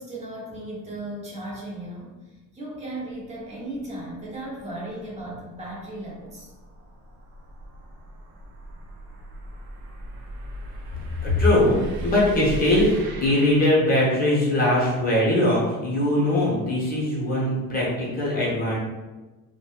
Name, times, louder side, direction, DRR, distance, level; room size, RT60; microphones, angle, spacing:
voice 1, 0.0-2.1 2.5-6.5, right 1 dB, 20° right, -5 dB, 0.6 m, -36 dB
sound 1, 3.1-14.5, right 1 dB, 85° right, 0.6 m, -39 dB
voice 2, 11.2-11.8 12.0-18.8, left 1 dB, 25° left, -5 dB, 0.8 m, -21 dB
2.6 x 2.2 x 2.9 m, 1.2 s
cardioid pair, 175°, 36 cm